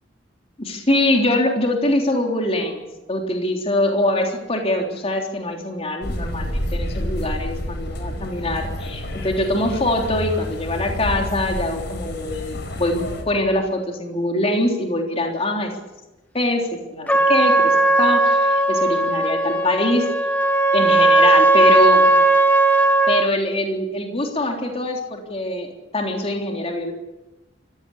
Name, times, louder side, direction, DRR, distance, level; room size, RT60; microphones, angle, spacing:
voice 1, 0.6-2.8 3.1-15.7 16.3-20.0 20.7-22.1 23.1-26.9, left 1 dB, 35° left, 2 dB, 3.5 m, -23 dB
sound 1, 6.0-13.2, left 1 dB, 65° left, 4.5 m, -29 dB
Trumpet, 17.1-23.3, right 2 dB, 10° left, 2.0 m, -17 dB
24.5 x 16.0 x 10.0 m, 1.0 s
head